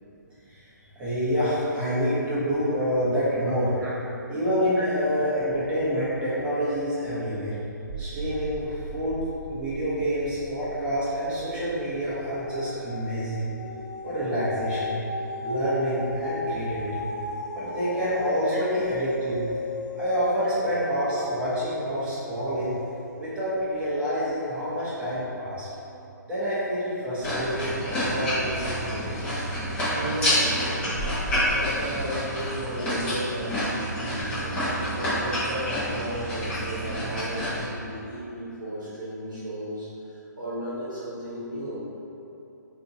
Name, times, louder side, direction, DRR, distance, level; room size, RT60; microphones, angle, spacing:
voice 1, 0.9-3.7 4.3-7.6 8.0-9.2 9.5-13.5 14.0-15.0 15.4-17.1 17.5-19.4 19.9-22.7 23.2-25.7 26.3-27.8 28.1-29.2, equal, 10° right, -12 dB, 1.0 m, -27 dB
sound 1, 7.8-14.2, right 2 dB, 45° right, 0.9 m, -41 dB
sound 2, 10.3-10.8 11.1-23.6 24.2-24.3, left 2 dB, 75° left, 0.8 m, -35 dB
sound 3, 27.2-37.6, equal, 10° left, 0.8 m, -28 dB
voice 2, 29.9-31.0 31.5-33.5 33.9-34.6 34.9-39.9 40.4-41.8, right 1 dB, 70° right, -9 dB, 0.9 m, -34 dB
3.6 x 2.6 x 2.7 m, 2.9 s
figure-of-eight pair, 135°, 10 cm